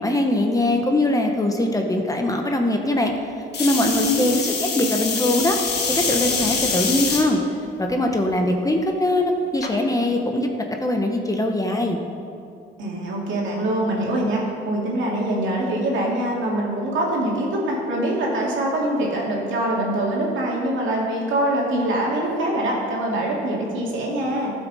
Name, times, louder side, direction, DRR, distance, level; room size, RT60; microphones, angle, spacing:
voice 1, 0.0-3.1 3.6-7.4 7.8-10.5 10.8-12.0, left 1 dB, 15° left, 3 dB, 1.0 m, -22 dB
sound 1, 3.5-7.2 7.9-8.3 9.6-9.7, left 5 dB, 60° left, 1.4 m, -25 dB
voice 2, 12.8-24.5, right 1 dB, 75° right, -3 dB, 2.3 m, -24 dB
13.0 x 6.2 x 4.2 m, 2.5 s
cardioid pair, 90°, 20 cm